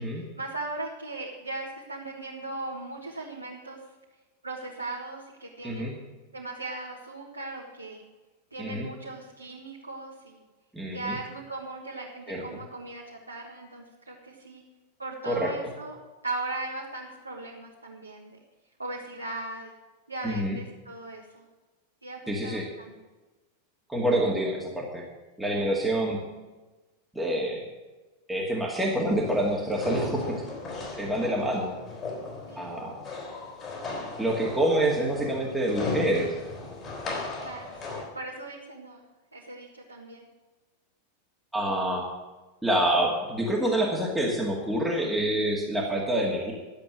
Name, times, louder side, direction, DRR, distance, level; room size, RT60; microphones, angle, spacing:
voice 1, 0.0-3.8 4.4-6.0 6.3-8.0 8.5-10.4 10.9-14.6 15.0-15.9 16.2-18.4 18.8-19.7 20.1-21.5 22.0-22.9 32.5-32.8 37.4-39.0 39.3-40.3, right 2 dB, 80° right, -3 dB, 1.7 m, -38 dB
voice 2, 5.6-5.9 8.6-8.9 10.7-11.2 12.3-12.4 15.3-15.5 20.2-20.6 22.3-22.7 23.9-25.0 25.4-26.2 27.1-27.6 28.3-30.4 31.0-31.8 32.6-33.0 34.2-36.3 37.9-38.0 41.5-42.0 42.6-46.5, right 1 dB, 5° right, -3 dB, 2.2 m, -27 dB
sound 1, 29.1-38.0, left 2 dB, 25° left, 4.1 m, -36 dB
12.5 x 7.7 x 7.8 m, 1.2 s
figure-of-eight pair, 90°, 0 cm